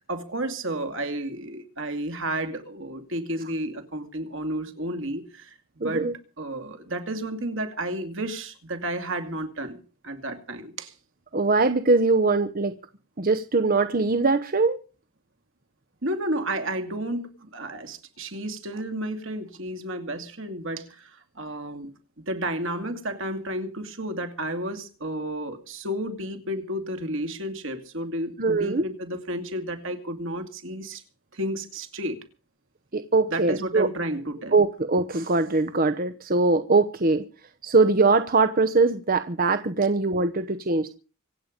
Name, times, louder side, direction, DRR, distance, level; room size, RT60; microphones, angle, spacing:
voice 1, 0.1-5.6 5.8-6.1 6.4-10.9 16.0-21.9 22.3-31.0 31.3-32.2 33.3-34.6, right 1 dB, 60° right, 2.5 m, -32 dB
voice 2, 5.8-6.1 11.3-12.7 13.2-14.8 28.4-28.9 32.9-33.9 34.5-37.2 37.6-40.9, right 3 dB, 40° right, 0.9 m, -22 dB
25.5 x 8.8 x 5.2 m
head